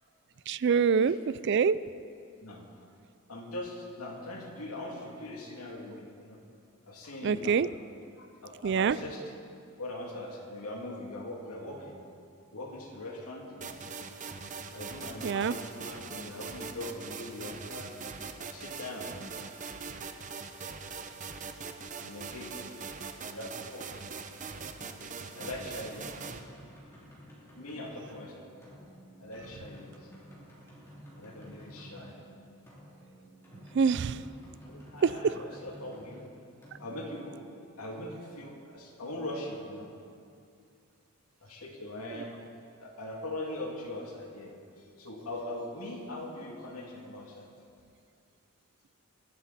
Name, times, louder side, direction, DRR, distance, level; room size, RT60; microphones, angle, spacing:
voice 1, 0.5-1.8 7.2-7.7 8.6-9.0 15.2-15.6 33.7-34.2 35.0-35.3 42.1-42.2, right 6 dB, 55° right, 17 dB, 0.3 m, -25 dB
voice 2, 3.3-6.4 6.9-7.6 8.2-9.2 9.8-12.0 12.5-14.0 14.7-17.9 18.5-19.1 22.0-22.6 23.2-23.9 25.3-26.2 27.6-28.5 29.2-30.1 31.1-32.1 34.7-36.3 36.8-37.4 37.8-39.9 41.4-42.3 42.8-47.5, left 1 dB, 90° left, -1 dB, 2.6 m, -41 dB
sound 1, 13.6-26.4, right 5 dB, 35° right, 0.8 m, -42 dB
sound 2, 24.5-38.0, equal, 10° left, 3.0 m, -52 dB
24.5 x 11.0 x 4.2 m, 2.4 s
head